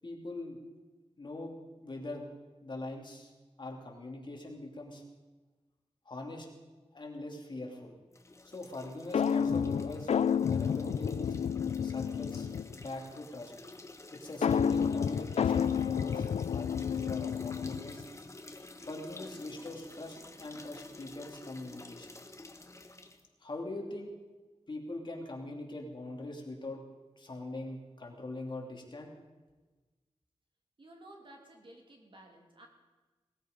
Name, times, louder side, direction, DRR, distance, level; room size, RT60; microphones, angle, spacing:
voice 1, 0.0-0.6 1.2-1.5 1.8-2.3 2.6-3.3 3.6-5.0 6.0-6.5 6.9-8.0 8.4-10.1 10.4-11.4 11.8-12.5 12.7-13.5 14.1-18.0 18.8-22.1 23.4-24.1 24.7-26.8 27.2-29.1, left 2 dB, 45° left, 0 dB, 2.9 m, -42 dB
sound 1, 8.1-23.2, left 2 dB, 25° left, 1.2 m, -51 dB
sound 2, 9.1-12.9 14.4-18.0, left 7 dB, 85° left, 0.4 m, -30 dB
voice 2, 30.8-32.7, right 1 dB, 50° right, 1 dB, 2.8 m, -54 dB
19.5 x 13.5 x 5.2 m, 1.2 s
wide cardioid pair, 90°, 11 cm